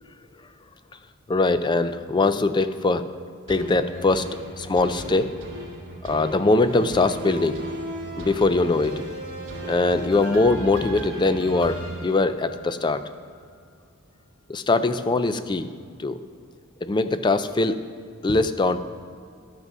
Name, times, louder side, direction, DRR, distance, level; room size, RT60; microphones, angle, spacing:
voice 1, 1.3-3.1 3.5-4.3 4.6-5.4 6.0-7.6 8.2-9.0 9.7-13.0 14.5-15.7 16.0-16.2 16.8-17.8 18.2-18.8, left 3 dB, 20° left, 11 dB, 0.4 m, -22 dB
sound 1, 3.5-12.9 13.3-13.4, right 1 dB, 60° right, 2.1 m, -36 dB
12.0 x 6.1 x 5.4 m, 2.2 s
head